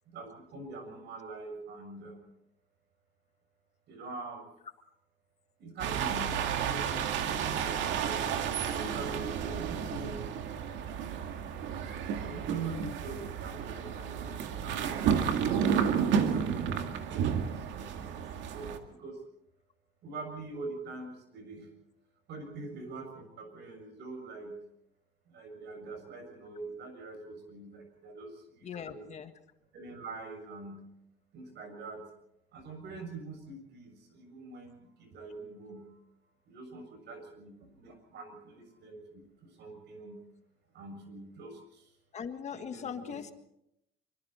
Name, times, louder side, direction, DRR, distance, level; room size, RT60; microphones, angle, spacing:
voice 1, 0.1-2.4 3.9-4.5 5.6-8.3 8.6-10.3 11.8-15.3 15.6-17.3 17.5-19.2 20.0-21.7 22.3-24.6 25.3-29.1 29.7-30.9 31.3-32.1 32.5-36.0 36.5-40.2 40.7-41.9 42.5-43.2, right 3 dB, 65° right, 5 dB, 6.9 m, -44 dB
sound 1, 5.8-18.8, right 7 dB, 80° right, 2.2 m, -31 dB
voice 2, 28.6-29.3 42.1-43.3, left 7 dB, 35° left, 8 dB, 1.6 m, -40 dB
25.5 x 24.5 x 4.4 m, 0.83 s
cardioid pair, 155°, 19 cm